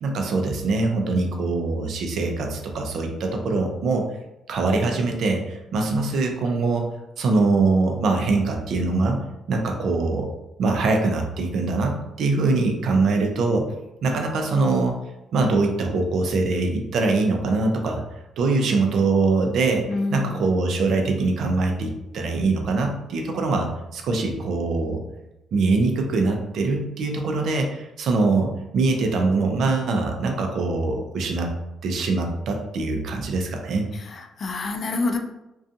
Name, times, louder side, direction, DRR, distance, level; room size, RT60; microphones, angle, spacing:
voice 1, 0.0-4.1 4.5-6.9 7.2-9.2 9.5-10.3 10.6-13.7 14.0-15.0 15.3-18.0 18.4-19.8 20.1-25.0 25.5-31.5 31.8-33.9, right 3 dB, 70° right, 3 dB, 0.4 m, -23 dB
voice 2, 19.9-20.4 33.9-35.2, left 3 dB, 50° left, 4 dB, 0.4 m, -27 dB
2.5 x 2.3 x 2.6 m, 0.92 s
cardioid pair, 90°, 0 cm